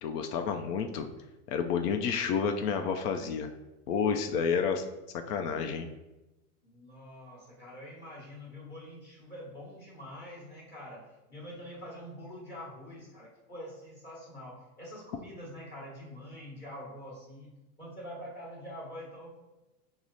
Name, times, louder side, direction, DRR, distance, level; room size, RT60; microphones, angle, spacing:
voice 1, 0.0-1.1 1.5-3.5 3.9-4.8 5.3-5.9, left 6 dB, 75° left, 6 dB, 0.6 m, -30 dB
voice 2, 6.6-17.5 17.8-19.6, equal, 20° left, -5 dB, 1.1 m, -45 dB
4.7 x 2.0 x 4.0 m, 1.0 s
supercardioid pair, 130°, 47 cm